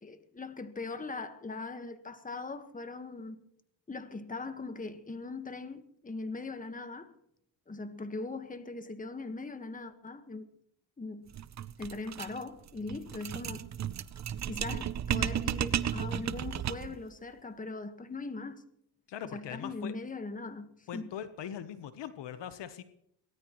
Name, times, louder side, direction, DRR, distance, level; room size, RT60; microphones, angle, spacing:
voice 1, 0.0-3.4 3.9-7.1 7.7-10.5 11.0-11.3 11.8-13.6 14.5-18.6 19.3-21.1, left 3 dB, 15° left, 1.5 m, -40 dB
sound 1, 11.3-17.0, right 10 dB, 35° right, 0.6 m, -34 dB
voice 2, 19.1-19.9 20.9-22.8, left 9 dB, 60° left, 1.1 m, -41 dB
23.0 x 18.0 x 3.1 m
cardioid pair, 80°, 47 cm